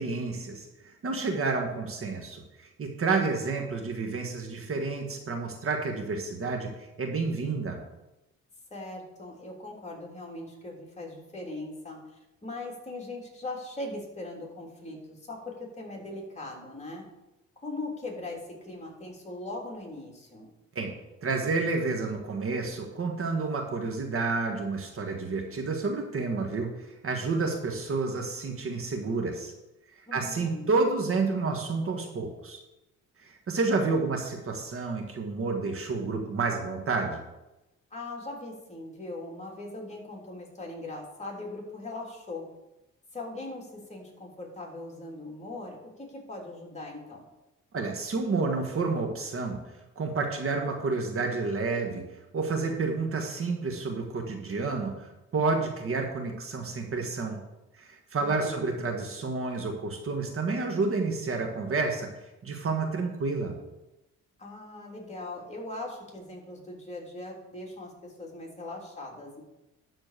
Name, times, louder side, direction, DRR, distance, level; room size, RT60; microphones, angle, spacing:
voice 1, 0.0-7.8 20.7-20.9 21.2-29.5 30.1-32.6 33.2-37.2 47.7-49.6 50.0-52.0 52.3-55.1 55.3-57.4 57.8-62.1 62.4-63.6, right 3 dB, 45° right, 3 dB, 1.6 m, -30 dB
voice 2, 8.7-17.1 17.6-20.5 30.1-30.7 37.9-42.4 43.1-47.3 58.1-58.8 64.4-69.4, left 2 dB, 20° left, -1 dB, 3.3 m, -40 dB
12.0 x 4.4 x 6.7 m, 0.96 s
cardioid pair, 90°, 30 cm